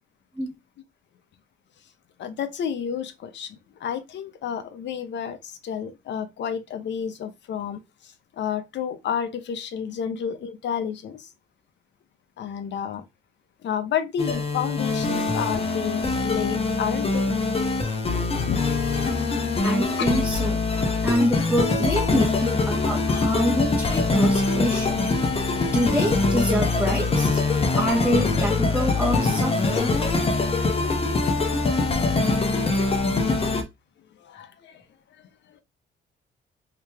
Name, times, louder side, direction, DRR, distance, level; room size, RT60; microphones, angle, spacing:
voice 1, 2.2-11.3 12.4-13.0 13.6-17.3 18.4-18.7 19.3-19.4 20.0-20.1 34.2-34.8 35.5-35.6, left 8 dB, 65° left, 0.7 m, -31 dB
sound 1, 14.2-33.6, left 3 dB, 30° left, 0.8 m, -23 dB
voice 2, 19.6-20.6 21.0-25.0 25.7-27.4 27.7-29.9, equal, 5° right, 1.2 m, -26 dB
3.1 x 2.9 x 3.4 m
cardioid pair, 90°, 20 cm